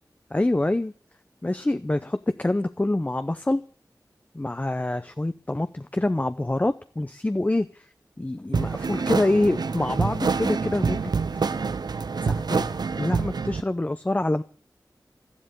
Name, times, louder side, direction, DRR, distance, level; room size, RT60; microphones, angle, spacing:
voice 1, 0.3-0.9 1.4-3.6 4.3-7.9 8.2-11.1 12.2-14.4, left 2 dB, 20° left, 10 dB, 0.7 m, -26 dB
sound 1, 8.5-13.6, right 5 dB, 75° right, 0.7 m, -26 dB
13.0 x 11.5 x 8.2 m, 0.43 s
wide cardioid pair, 65°, 7 cm